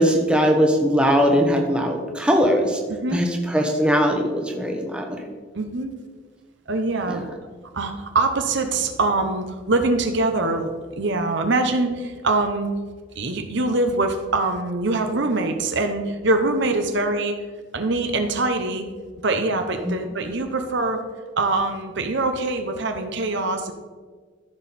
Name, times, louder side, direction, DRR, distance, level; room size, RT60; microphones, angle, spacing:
voice 1, 0.0-2.8 3.1-5.2 7.1-7.2, equal, 5° right, 2 dB, 1.1 m, -20 dB
voice 2, 2.9-3.3 5.5-5.9 6.7-7.3 7.7-10.7 11.0-12.7 13.2-17.4 17.7-18.8 19.2-21.0 21.4-23.7, right 2 dB, 55° right, 6 dB, 0.8 m, -23 dB
14.0 x 6.3 x 4.2 m, 1.5 s
head